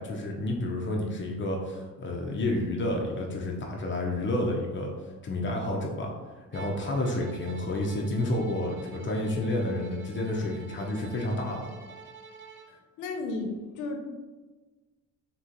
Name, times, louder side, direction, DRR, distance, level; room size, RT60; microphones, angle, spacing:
voice 1, 0.0-4.9 5.2-6.1 6.5-11.7, left 1 dB, 40° left, 0 dB, 0.7 m, -30 dB
Bowed string instrument, 6.5-12.8, right 5 dB, 40° right, 0.6 m, -49 dB
voice 2, 12.7-14.1, left 3 dB, 85° left, 4 dB, 0.7 m, -34 dB
3.7 x 3.0 x 3.9 m, 1.3 s
cardioid pair, 90°, 30 cm